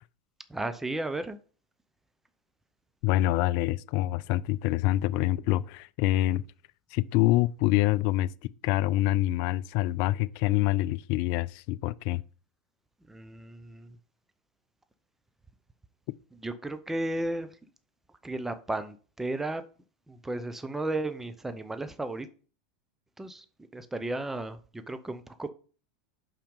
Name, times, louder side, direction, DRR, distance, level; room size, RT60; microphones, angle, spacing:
voice 1, 0.5-1.4 13.1-14.0 16.4-17.5 18.2-19.6 20.1-22.3 23.2-23.4 23.7-25.5, right 2 dB, 5° right, 0.7 m, -34 dB
voice 2, 3.0-6.4 6.9-8.3 8.6-12.2, left 17 dB, 55° left, 0.3 m, -26 dB
5.7 x 5.0 x 5.3 m
hypercardioid pair, 105°, 4 cm